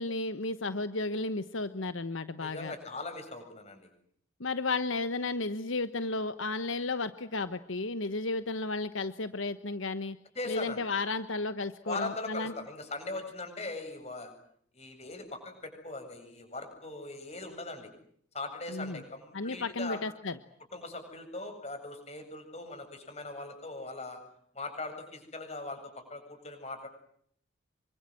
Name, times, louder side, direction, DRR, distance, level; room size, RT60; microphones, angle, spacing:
voice 1, 0.0-2.7 4.4-10.2 10.5-12.5 18.7-19.0 19.3-20.4, left 3 dB, 80° left, 12 dB, 1.2 m, -33 dB
voice 2, 2.4-3.9 10.3-10.8 11.8-14.3 14.7-17.9 18.3-20.0 20.7-24.2 24.5-26.9, left 2 dB, 30° left, 6 dB, 7.9 m, -40 dB
27.5 x 24.5 x 7.7 m, 0.67 s
head